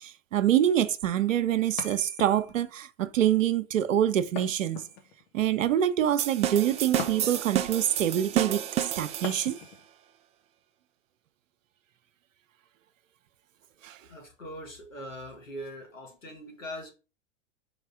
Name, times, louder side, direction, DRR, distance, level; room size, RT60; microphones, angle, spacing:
voice 1, 0.0-4.8 5.3-9.6 13.8-14.0, right 11 dB, 80° right, 0.8 m, -26 dB
sound 1, 1.8-2.7 4.4-5.3 7.0-7.6 9.2-9.9, left 7 dB, 55° left, 1.4 m, -40 dB
sound 2, 6.2-9.6, right 11 dB, 20° right, 0.3 m, -30 dB
voice 2, 14.1-16.9, equal, 85° left, 2.1 m, -41 dB
5.0 x 4.0 x 4.9 m
hypercardioid pair, 100°, 38 cm